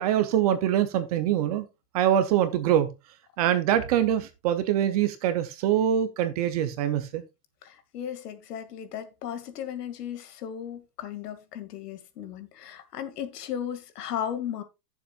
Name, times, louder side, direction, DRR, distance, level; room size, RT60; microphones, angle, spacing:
voice 1, 0.0-1.7 1.9-2.9 3.4-7.2, right 10 dB, 25° right, 0.5 m, -24 dB
voice 2, 7.6-14.6, left 9 dB, 80° left, 2.1 m, -36 dB
15.5 x 7.1 x 2.3 m
supercardioid pair, 160°, 47 cm